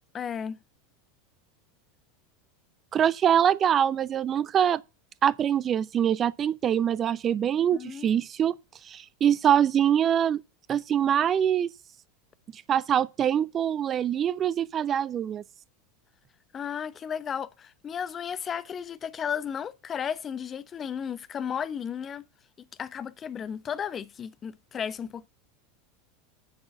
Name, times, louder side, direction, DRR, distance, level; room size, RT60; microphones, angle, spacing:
voice 1, 0.1-0.6 7.7-8.1 16.5-22.2 22.6-25.3, left 8 dB, 30° left, 0.8 m, -34 dB
voice 2, 2.9-4.8 5.2-8.6 8.9-10.4 10.7-11.7 12.7-15.4, right 9 dB, 30° right, 0.5 m, -24 dB
10.5 x 6.0 x 4.5 m
figure-of-eight pair, 80°, 0 cm